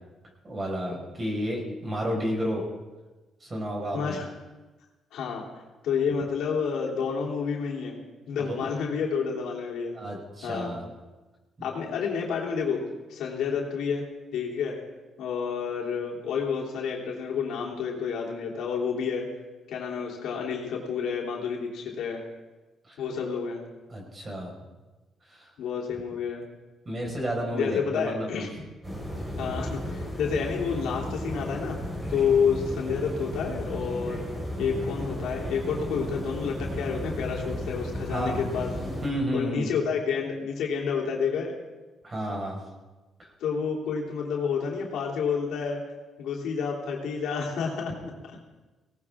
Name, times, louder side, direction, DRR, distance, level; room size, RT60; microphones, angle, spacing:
voice 1, 0.4-2.6 3.4-4.2 8.5-8.7 9.9-10.8 11.6-11.7 22.9-23.0 23.9-24.5 25.3-25.5 26.8-28.5 38.1-38.4 39.0-39.7 42.0-42.6, equal, 30° right, 0 dB, 5.1 m, -31 dB
voice 2, 3.9-4.3 5.1-5.4 5.8-8.0 8.3-10.0 10.4-10.7 11.6-14.1 14.3-14.8 15.2-19.3 19.7-22.2 23.0-23.6 25.6-26.4 27.5-28.5 29.4-31.8 32.1-34.2 34.6-38.7 39.3-41.5 43.4-45.8 46.2-47.9, left 6 dB, 80° left, -2 dB, 3.2 m, -29 dB
sound 1, 28.8-39.1, equal, 15° right, 5.0 m, -34 dB
18.5 x 18.0 x 3.7 m, 1.2 s
cardioid pair, 90°, 0 cm